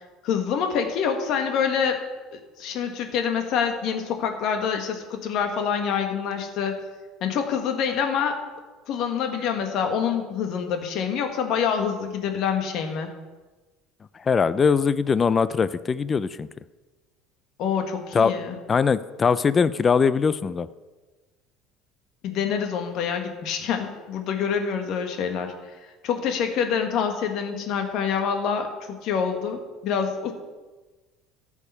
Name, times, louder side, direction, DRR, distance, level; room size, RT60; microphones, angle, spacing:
voice 1, 0.2-2.0 2.3-6.8 7.2-8.4 8.9-13.1 17.6-18.6 22.2-25.5 26.0-30.3, left 7 dB, 60° left, 5 dB, 1.8 m, -26 dB
voice 2, 14.2-16.5 18.1-18.3 18.7-20.7, left 5 dB, 30° left, 16 dB, 0.4 m, -21 dB
13.5 x 7.2 x 5.5 m, 1.2 s
supercardioid pair, 95°, 0 cm